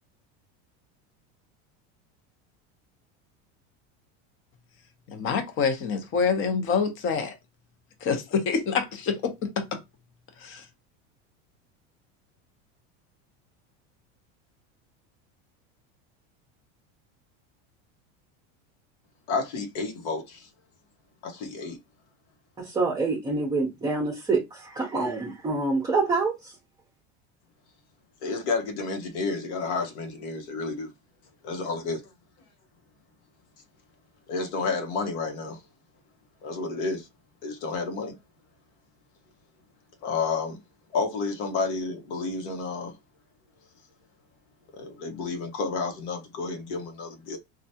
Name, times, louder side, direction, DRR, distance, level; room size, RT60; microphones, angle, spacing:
voice 1, 5.1-7.3 8.0-9.3 10.4-10.6, left 5 dB, 40° left, 0.8 m, -26 dB
voice 2, 19.3-20.5 21.2-21.8 28.2-30.9 31.4-32.0 34.3-35.6 36.4-37.1 37.4-38.1 40.0-40.6 40.9-42.9 44.7-47.4, left 4 dB, 80° left, 1.1 m, -30 dB
voice 3, 22.6-26.5, right 3 dB, 10° right, 0.6 m, -26 dB
3.3 x 2.4 x 2.7 m
supercardioid pair, 135°, 34 cm